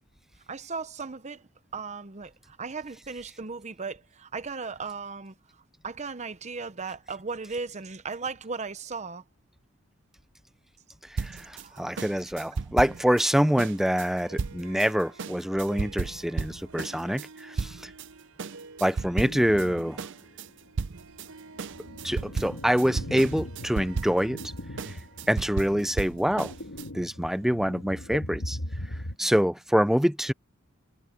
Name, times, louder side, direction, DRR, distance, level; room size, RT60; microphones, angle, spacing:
voice 1, 0.5-5.3 5.8-9.2 11.4-12.0 17.8-17.9 29.2-29.3, right 4 dB, 35° right, 0.8 m, -37 dB
sound 1, 11.2-18.1 18.4-19.7 20.0-26.9, right 4 dB, 60° right, 0.6 m, -34 dB
voice 2, 11.8-17.7 18.8-20.0 22.0-24.4 25.3-26.5 26.9-28.6 29.2-30.3, equal, ahead, 0.5 m, -25 dB
Harp, 12.6-28.0, right 3 dB, 90° right, 4.7 m, -52 dB
sound 2, 19.2-20.1 20.5-20.6 21.2-29.2, left 1 dB, 80° left, 2.1 m, -39 dB
head